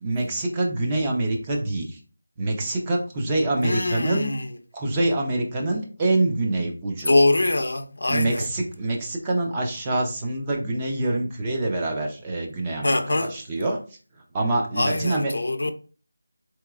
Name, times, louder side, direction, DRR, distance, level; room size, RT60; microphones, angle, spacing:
voice 1, 0.0-2.0 2.4-4.3 4.7-7.1 8.1-13.8 14.3-15.3, right 2 dB, 15° right, 0.4 m, -25 dB
voice 2, 3.6-4.5 7.1-8.5 12.8-13.4 14.8-15.7, left 2 dB, 70° left, 0.4 m, -23 dB
3.8 x 2.9 x 2.3 m
figure-of-eight pair, 175°, 0 cm